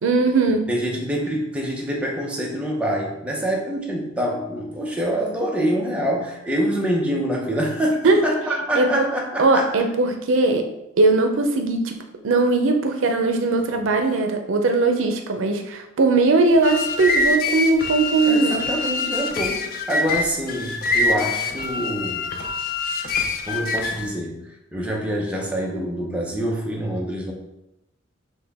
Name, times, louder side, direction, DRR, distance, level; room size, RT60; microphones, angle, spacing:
voice 1, 0.0-0.6 8.0-8.2 8.8-9.0 9.4-10.6 11.0-12.0 12.2-18.6, right 3 dB, 85° right, 4 dB, 0.5 m, -19 dB
voice 2, 0.7-9.7 18.3-22.3 23.5-27.3, equal, 5° right, -3 dB, 0.7 m, -26 dB
sound 1, 16.5-24.1, left 3 dB, 50° left, 0.4 m, -25 dB
6.0 x 2.2 x 3.4 m, 0.89 s
head